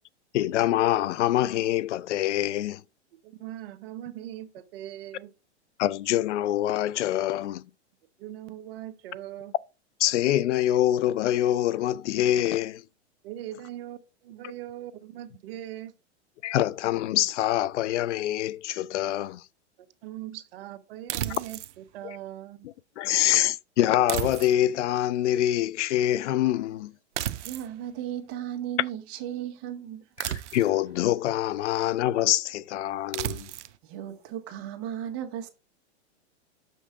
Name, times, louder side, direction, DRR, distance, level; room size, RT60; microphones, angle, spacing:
voice 1, 0.3-2.8 5.8-7.6 10.0-12.8 16.4-19.4 22.0-22.2 22.6-26.9 30.2-33.5, left 13 dB, 80° left, 0.5 m, -25 dB
voice 2, 3.2-5.3 8.2-9.5 13.2-15.9 20.0-22.7, right 13 dB, 55° right, 0.9 m, -40 dB
sound 1, 21.1-21.8 24.1-24.8 27.2-27.7 30.2-30.8 33.1-33.8, right 12 dB, 85° right, 0.6 m, -33 dB
voice 3, 27.4-30.1 33.0-33.1 33.8-35.5, right 11 dB, 40° right, 1.4 m, -35 dB
6.5 x 5.3 x 3.7 m
hypercardioid pair, 125°, 35 cm